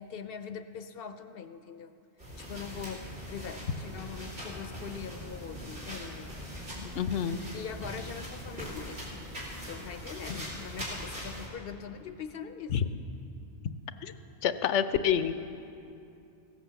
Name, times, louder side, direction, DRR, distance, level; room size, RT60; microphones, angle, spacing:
voice 1, 0.0-1.9 2.4-6.3 7.5-9.2 9.6-12.8, left 7 dB, 60° left, 9 dB, 0.7 m, -42 dB
sound 1, 2.2-11.5, equal, 85° right, 3.3 m, -41 dB
sound 2, 2.5-8.2, equal, 30° right, 1.5 m, -51 dB
voice 2, 6.8-7.4 12.7-12.8 14.0-14.1 14.4-15.3, left 8 dB, 85° left, 11 dB, 0.9 m, -28 dB
16.5 x 8.3 x 6.9 m, 2.7 s
omnidirectional pair, 1.2 m